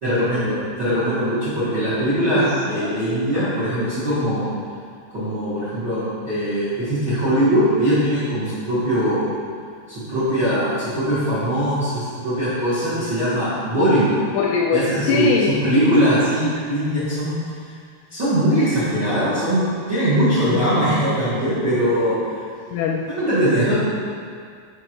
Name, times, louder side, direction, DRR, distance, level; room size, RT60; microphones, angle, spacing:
voice 1, 0.0-4.5 5.1-9.3 9.9-14.2 14.7-15.3 15.6-17.3 18.1-22.1 23.1-23.8, equal, 55° right, -13 dB, 1.1 m, -21 dB
voice 2, 14.4-15.6 20.5-20.7 22.7-23.0, left 5 dB, 80° left, 0 dB, 2.4 m, -22 dB
6.5 x 4.7 x 4.5 m, 2.1 s
omnidirectional pair, 5.0 m